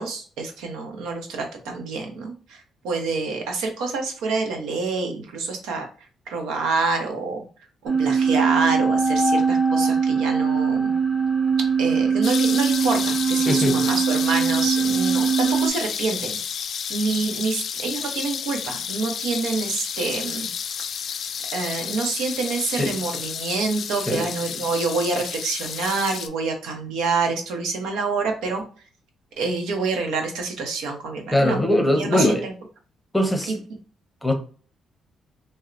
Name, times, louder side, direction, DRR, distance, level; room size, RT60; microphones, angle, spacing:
voice 1, 0.0-5.9 6.3-7.4 8.0-10.9 11.8-16.4 16.9-20.5 21.5-28.6 29.4-31.6 31.9-32.5 33.5-33.6, right 4 dB, 90° right, 0.7 m, -27 dB
sound 1, 7.9-15.7, right 5 dB, 25° right, 0.9 m, -21 dB
sound 2, 12.2-26.3, left 7 dB, 60° left, 0.3 m, -31 dB
voice 2, 13.5-13.8 22.7-23.0 24.1-24.3 31.3-32.4 33.1-33.5 34.2-34.3, left 1 dB, 5° left, 0.8 m, -21 dB
4.1 x 2.1 x 2.5 m
cardioid pair, 90°, 0 cm